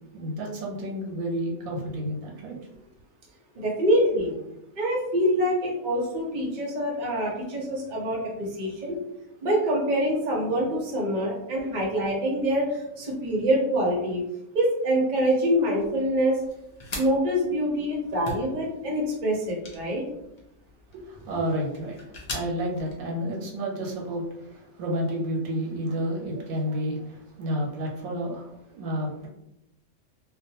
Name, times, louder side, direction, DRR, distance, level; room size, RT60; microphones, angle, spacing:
voice 1, 0.1-2.6 20.9-29.3, equal, 90° right, -2 dB, 1.2 m, -31 dB
voice 2, 3.6-4.4 4.8-9.0 9.4-14.2 14.5-16.4 17.0-20.0, equal, 45° right, -3 dB, 0.7 m, -25 dB
sound 1, 15.8-22.9, left 1 dB, 70° left, 0.3 m, -42 dB
2.5 x 2.2 x 2.7 m, 0.86 s
omnidirectional pair, 1.5 m